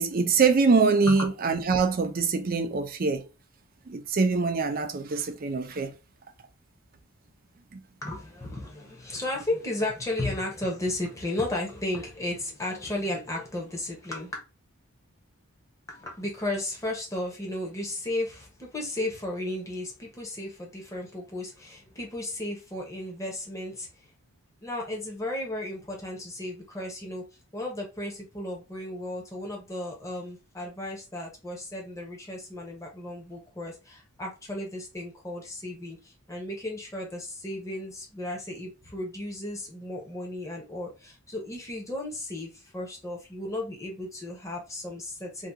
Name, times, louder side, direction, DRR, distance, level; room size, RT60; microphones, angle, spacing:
voice 1, 0.0-3.3 3.9-5.9 7.7-7.8, right 4 dB, 40° right, 0.4 m, -24 dB
voice 2, 8.0-14.4 15.9-24.1 24.6-27.2 27.5-45.5, left 1 dB, 15° left, 0.9 m, -34 dB
2.8 x 2.4 x 3.5 m
head